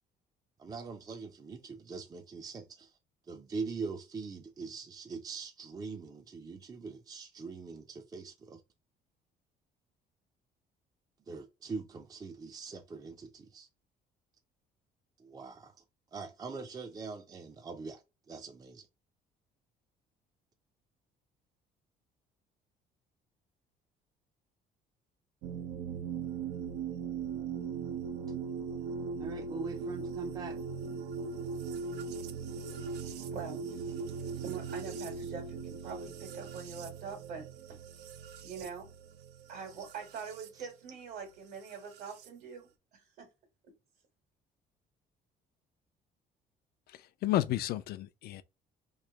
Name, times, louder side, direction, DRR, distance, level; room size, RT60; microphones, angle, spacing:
voice 1, 0.6-2.9 3.3-8.6 11.3-13.7 15.2-15.7 16.1-18.0 18.3-18.9 29.2-30.6, right 4 dB, 20° right, 0.4 m, -42 dB
sound 1, 25.4-40.5 41.6-42.3, right 5 dB, 85° right, 0.5 m, -39 dB
voice 2, 32.5-37.4 38.4-38.9 39.5-43.3, right 5 dB, 70° right, 1.5 m, -44 dB
voice 3, 46.9-48.4, left 14 dB, 65° left, 0.4 m, -32 dB
3.1 x 2.5 x 3.4 m
cardioid pair, 110°, 17 cm